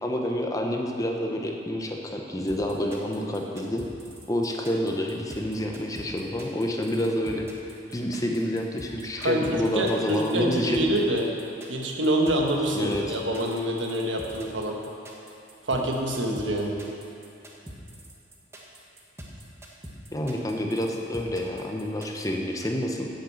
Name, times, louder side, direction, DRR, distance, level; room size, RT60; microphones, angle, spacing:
voice 1, 0.0-3.8 4.3-7.5 7.9-10.9 12.7-13.2 20.1-23.1, equal, 20° left, 1 dB, 0.9 m, -28 dB
sound 1, 2.5-22.3, right 1 dB, 15° right, 1.2 m, -44 dB
voice 2, 9.2-11.2 11.7-14.8 15.6-16.8, right 1 dB, 80° right, 0 dB, 1.4 m, -26 dB
10.0 x 6.6 x 7.7 m, 2.7 s
head